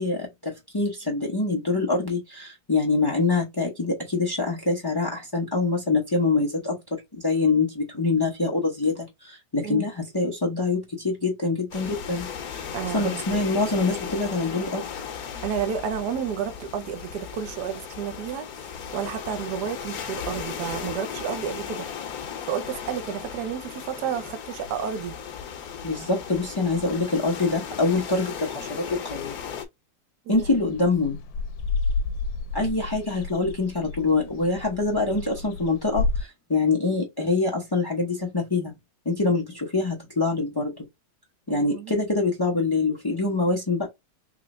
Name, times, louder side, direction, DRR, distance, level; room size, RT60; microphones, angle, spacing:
voice 1, 0.0-12.7 12.9-14.8 25.8-29.3 30.3-31.2 32.5-38.7 39.0-40.8 41.5-43.9, left 3 dB, 30° left, 0.4 m, -25 dB
sound 1, 11.7-29.6, left 7 dB, 60° left, 1.2 m, -36 dB
voice 2, 12.7-13.2 15.4-21.9 22.5-25.2 30.3-30.4 41.5-42.0, right 8 dB, 70° right, 1.2 m, -31 dB
sound 2, 30.3-36.2, left 3 dB, 85° left, 1.3 m, -30 dB
3.8 x 3.1 x 2.5 m
omnidirectional pair, 2.0 m